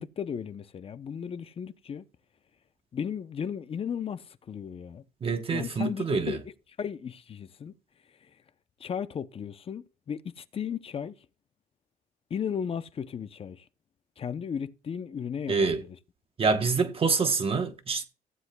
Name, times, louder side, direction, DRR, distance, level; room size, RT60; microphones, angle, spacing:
voice 1, 0.0-2.1 2.9-5.0 5.5-6.5 6.8-7.7 8.2-8.4 8.8-11.1 12.3-13.7 14.2-16.0, left 7 dB, 35° left, 0.7 m, -35 dB
voice 2, 5.2-6.4 15.5-15.8 16.4-18.0, right 4 dB, 35° right, 1.1 m, -26 dB
15.0 x 9.7 x 2.3 m
cardioid pair, 110°, 17 cm